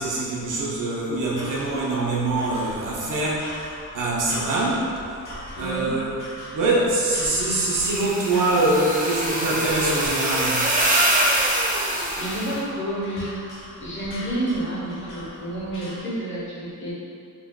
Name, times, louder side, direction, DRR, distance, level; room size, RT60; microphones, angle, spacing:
voice 1, 0.0-3.5 3.9-4.9 5.6-6.1 6.5-10.7, right 2 dB, 70° right, -5 dB, 0.7 m, -24 dB
sound 1, 1.2-16.0, left 1 dB, 75° left, 0.8 m, -40 dB
voice 2, 5.6-5.9 8.3-8.5 12.2-13.4 13.8-16.9, right 1 dB, 40° left, -8 dB, 1.0 m, -30 dB
sound 2, 7.6-12.5, right 1 dB, 25° right, 0.5 m, -24 dB
3.4 x 2.5 x 2.2 m, 2.4 s
cardioid pair, 85°, 32 cm